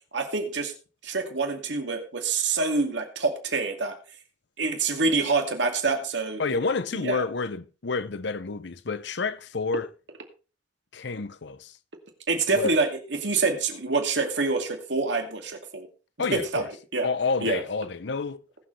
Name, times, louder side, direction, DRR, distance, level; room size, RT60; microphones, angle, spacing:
voice 1, 0.1-0.7 1.0-3.9 4.6-6.4 6.9-7.2 12.3-15.9 16.3-16.6 16.9-17.1 17.4-17.6, right 3 dB, 70° right, 2.4 m, -26 dB
voice 2, 6.4-9.9 10.9-11.7 12.5-12.7 16.2-16.7 17.0-18.4, left 4 dB, 70° left, 0.8 m, -29 dB
20.0 x 7.6 x 3.3 m
head